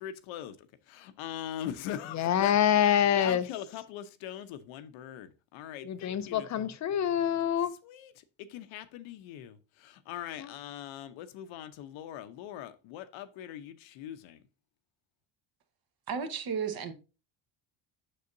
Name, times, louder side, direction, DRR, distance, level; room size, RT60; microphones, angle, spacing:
voice 1, 0.0-2.6 3.1-6.8 7.8-14.4, left 11 dB, 80° left, 0.8 m, -41 dB
voice 2, 2.1-3.4 5.8-7.7 10.4-10.5, left 9 dB, 40° left, 0.5 m, -26 dB
voice 3, 16.1-16.9, right 6 dB, 50° right, 1.2 m, -33 dB
6.7 x 6.3 x 2.6 m
cardioid pair, 135°, 47 cm